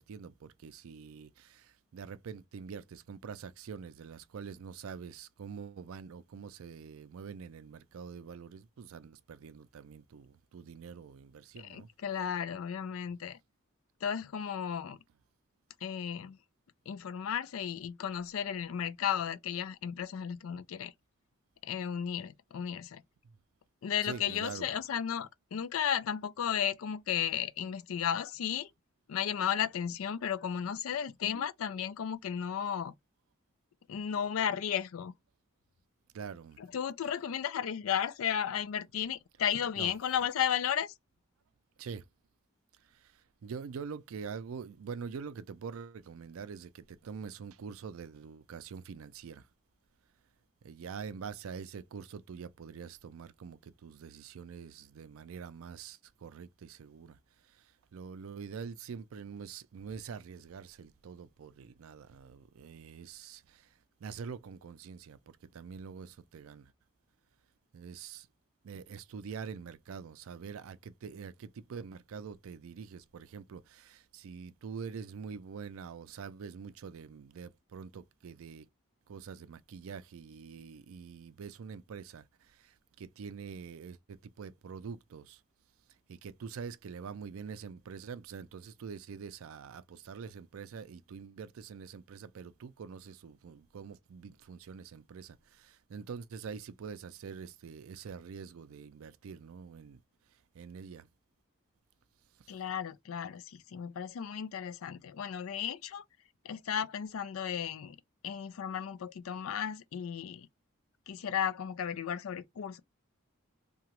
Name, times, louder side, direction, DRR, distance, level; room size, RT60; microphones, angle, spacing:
voice 1, 0.0-11.9 23.2-23.4 24.0-24.8 36.1-36.6 39.8-39.9 41.8-42.1 42.8-49.5 50.6-66.7 67.7-68.3 68.6-78.7 79.1-85.4 86.1-100.0 100.5-101.1 102.4-102.5, right 6 dB, 80° right, 0.4 m, -45 dB
voice 2, 11.6-13.4 14.0-15.0 15.8-16.4 16.9-20.9 21.6-23.0 23.8-28.7 29.1-32.9 33.9-35.1 36.6-40.9 102.5-106.0 106.4-108.0 108.2-110.5 111.1-112.8, left 8 dB, 80° left, 0.4 m, -34 dB
2.8 x 2.3 x 2.9 m
head